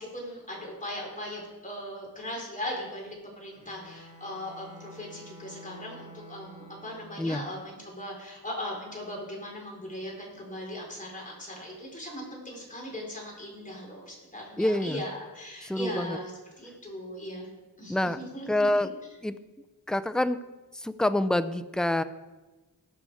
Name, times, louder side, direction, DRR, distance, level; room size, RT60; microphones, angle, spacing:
voice 1, 0.0-16.3 16.6-17.5 17.8-18.7, left 1 dB, 20° left, -2 dB, 4.7 m, -39 dB
Bowed string instrument, 3.6-7.4, equal, 20° right, 4.5 m, -49 dB
voice 2, 14.6-15.0 15.6-16.2 17.9-18.2 18.5-18.9 19.2-19.3 19.9-20.4 20.7-22.0, left 1 dB, ahead, 12 dB, 0.5 m, -26 dB
20.0 x 6.8 x 4.9 m, 1.2 s
wide cardioid pair, 100°, 37 cm